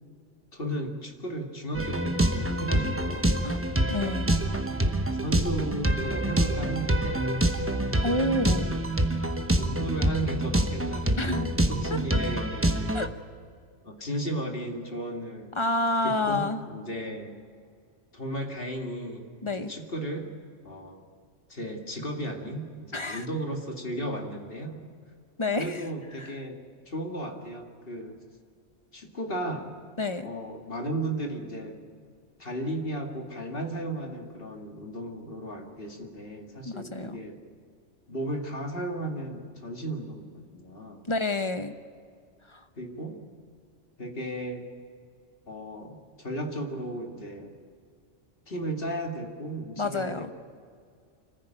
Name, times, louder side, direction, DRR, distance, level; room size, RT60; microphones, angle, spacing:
voice 1, 0.5-3.3 4.8-7.3 8.2-8.7 9.6-11.4 11.7-12.8 13.8-15.6 16.0-17.3 18.1-20.3 20.6-21.0 21.5-24.8 25.6-26.6 26.9-28.2 28.9-29.7 30.2-31.8 32.4-37.4 38.1-41.0 42.8-43.2 44.0-44.6 45.5-47.5 48.5-50.3, right 1 dB, 50° left, 2 dB, 2.5 m, -35 dB
sound 1, 1.7-13.1, right 1 dB, 10° right, 0.9 m, -26 dB
voice 2, 3.9-4.3 8.0-8.7 11.2-11.5 11.9-12.0 12.9-13.1 15.6-16.6 19.4-19.7 22.9-23.3 25.4-25.8 26.2-26.3 30.0-30.3 36.7-37.2 41.1-41.7 42.5-42.6 49.8-50.3, left 2 dB, 25° left, 8 dB, 0.9 m, -28 dB
25.0 x 15.0 x 9.0 m, 2.2 s
omnidirectional pair, 1.2 m